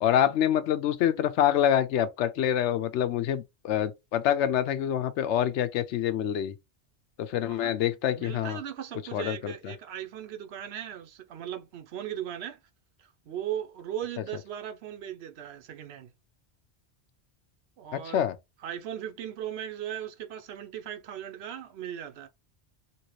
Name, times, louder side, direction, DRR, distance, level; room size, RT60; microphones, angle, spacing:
voice 1, 0.0-6.5 7.2-8.6 9.1-9.7 17.9-18.3, left 10 dB, 85° left, 0.9 m, -26 dB
voice 2, 7.4-7.7 8.1-12.6 13.0-16.1 17.8-18.3 18.6-22.3, right 10 dB, 70° right, 0.8 m, -38 dB
3.0 x 2.8 x 3.0 m
omnidirectional pair, 1.1 m